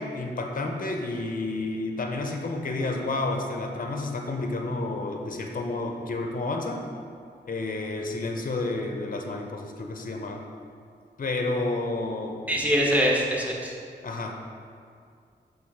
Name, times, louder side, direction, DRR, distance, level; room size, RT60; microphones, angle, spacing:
voice 1, 0.0-6.9 7.4-10.4 11.2-12.4 12.8-12.9 14.0-14.3, left 2 dB, 50° left, 3 dB, 0.6 m, -30 dB
voice 2, 12.5-13.7, equal, 10° right, -3 dB, 1.1 m, -23 dB
6.2 x 3.4 x 4.8 m, 2.2 s
cardioid pair, 55°, 18 cm